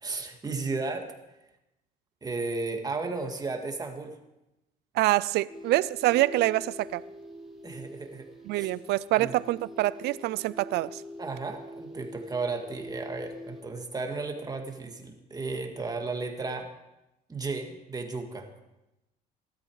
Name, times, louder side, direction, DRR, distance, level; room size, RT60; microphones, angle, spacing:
voice 1, 0.0-1.1 2.2-4.1 7.6-8.3 8.6-8.7 9.2-9.3 11.2-16.7 17.3-18.5, right 3 dB, 20° right, 4 dB, 2.2 m, -34 dB
voice 2, 4.9-7.0 8.5-11.0, right 17 dB, 80° right, 19 dB, 0.5 m, -26 dB
sound 1, 5.5-13.6, equal, ahead, 3.4 m, -44 dB
17.5 x 12.5 x 4.9 m, 0.94 s
cardioid pair, 110°, 17 cm